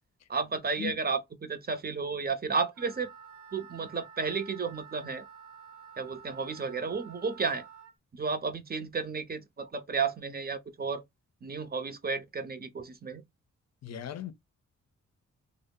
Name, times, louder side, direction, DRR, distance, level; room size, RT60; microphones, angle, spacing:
voice 1, 0.3-3.1 3.5-5.2 6.0-7.6 8.1-11.0 11.4-13.2, right 5 dB, 30° right, 0.6 m, -32 dB
Wind instrument woodwind instrument, 2.7-7.9, right 6 dB, 85° right, 0.7 m, -50 dB
voice 2, 13.8-14.3, left 10 dB, 65° left, 0.5 m, -37 dB
2.1 x 2.0 x 3.4 m
cardioid pair, 60°, 29 cm